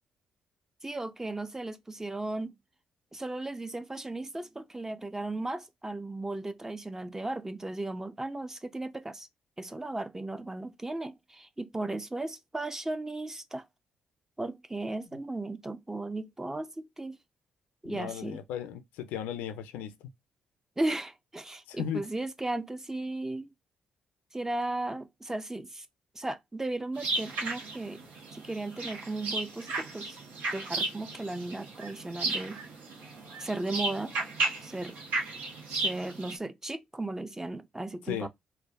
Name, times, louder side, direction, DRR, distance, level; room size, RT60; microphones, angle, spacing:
voice 1, 0.8-2.5 3.1-9.3 9.6-13.7 14.4-17.2 17.8-18.4 20.8-23.5 24.3-25.8 26.2-28.0 28.3-30.2 30.5-32.6 33.4-34.2 34.6-35.0 35.7-38.3, right 2 dB, 15° right, 0.4 m, -36 dB
voice 2, 17.9-19.9 21.7-22.1 38.1-38.3, left 9 dB, 80° left, 0.4 m, -36 dB
sound 1, 26.9-36.4, right 2 dB, 70° right, 0.9 m, -34 dB
3.3 x 2.0 x 2.3 m
hypercardioid pair, 50°, 3 cm